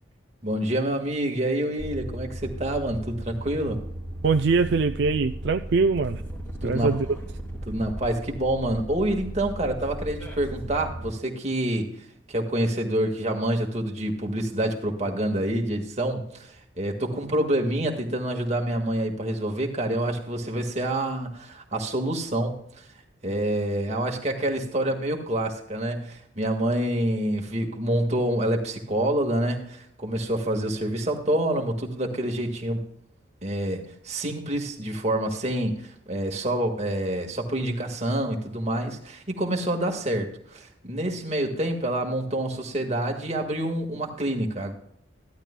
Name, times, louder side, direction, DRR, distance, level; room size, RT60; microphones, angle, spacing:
voice 1, 0.4-3.8 6.6-6.9 7.6-11.9 12.3-22.9 23.2-32.9 33.4-44.7, right 1 dB, 35° right, 2 dB, 1.6 m, -27 dB
sound 1, 1.8-11.1, right 1 dB, 15° left, 2.5 m, -36 dB
voice 2, 4.2-6.2 6.6-7.2, right 4 dB, 60° right, 8 dB, 0.4 m, -22 dB
14.0 x 12.0 x 2.2 m, 0.70 s
head